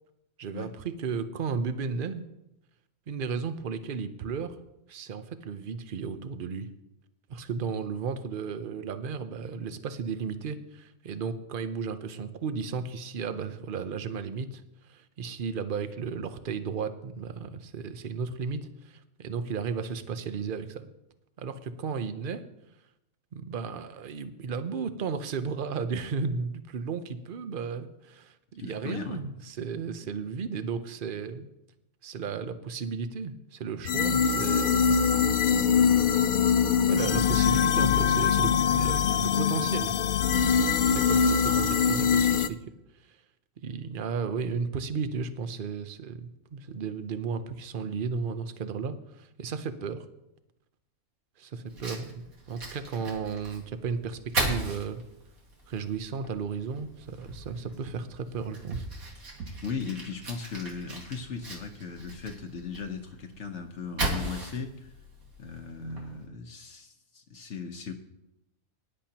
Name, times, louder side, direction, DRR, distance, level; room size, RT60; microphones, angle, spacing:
voice 1, 0.4-2.2 3.1-4.6 4.9-6.7 7.3-20.9 21.4-22.4 23.3-31.5 32.0-34.9 35.7-36.1 36.8-39.9 40.8-42.6 43.1-43.2 43.6-50.1 51.4-55.0 55.7-58.8, right 5 dB, 45° right, 10 dB, 0.8 m, -34 dB
voice 2, 28.6-29.2 59.6-64.9 65.4-67.9, left 5 dB, 60° left, 5 dB, 1.1 m, -37 dB
sound 1, 33.9-42.5, left 7 dB, 90° left, 0.4 m, -23 dB
Fire, 51.7-66.3, right 2 dB, 80° right, 2.5 m, -38 dB
19.0 x 10.5 x 2.9 m, 0.88 s
omnidirectional pair, 1.5 m